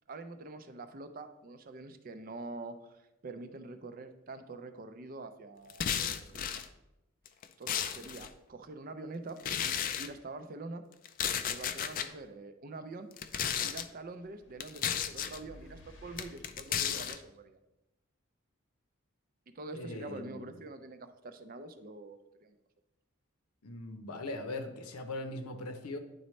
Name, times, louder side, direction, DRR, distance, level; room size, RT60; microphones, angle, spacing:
voice 1, 0.1-6.6 7.6-9.4 10.0-10.8 11.5-13.1 13.6-17.6 19.5-22.6, right 2 dB, 40° right, 9 dB, 0.4 m, -45 dB
sound 1, 5.7-6.7 7.3-8.3 9.4-10.1 11.0-12.1 13.1-13.9 14.6-15.4 16.2-17.2, left 8 dB, 40° left, 0.3 m, -33 dB
sound 2, 14.1-16.7, left 2 dB, 55° left, 0.8 m, -55 dB
voice 2, 19.7-20.6 23.6-26.0, left 2 dB, 90° left, 7 dB, 0.8 m, -40 dB
9.9 x 4.1 x 3.2 m, 0.94 s
head